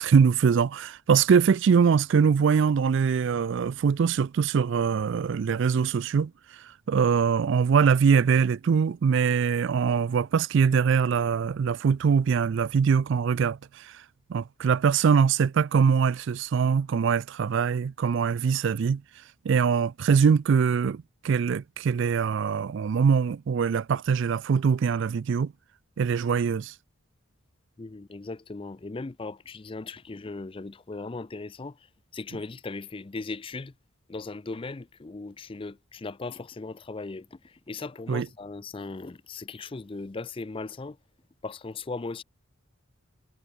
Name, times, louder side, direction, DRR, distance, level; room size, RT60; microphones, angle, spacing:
voice 1, 0.0-13.9 14.3-19.0 19.4-25.5 26.0-26.7 38.1-38.3, right 6 dB, 55° right, 0.3 m, -23 dB
voice 2, 27.8-31.9 32.1-33.7 34.1-41.0 41.4-42.2, left 3 dB, 25° left, 0.4 m, -38 dB
head